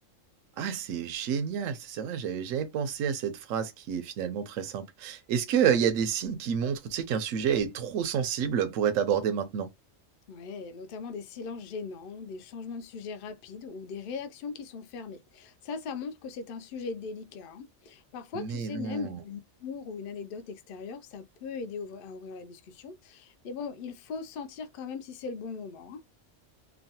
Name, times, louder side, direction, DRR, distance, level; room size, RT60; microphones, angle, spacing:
voice 1, 0.6-9.7 18.3-19.2, right 8 dB, 85° right, 1.0 m, -29 dB
voice 2, 10.3-26.0, left 5 dB, 60° left, 0.6 m, -39 dB
3.0 x 2.2 x 2.8 m
omnidirectional pair, 1.3 m